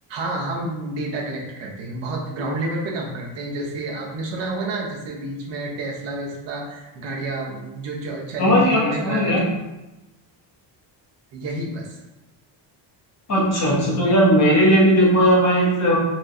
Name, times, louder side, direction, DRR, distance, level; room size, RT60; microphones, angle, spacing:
voice 1, 0.1-9.4 11.3-12.0, right 2 dB, 70° right, -2 dB, 1.1 m, -29 dB
voice 2, 8.4-9.4 13.3-16.0, equal, 35° left, -4 dB, 1.1 m, -17 dB
4.4 x 3.1 x 2.7 m, 1.0 s
cardioid pair, 160°, 46 cm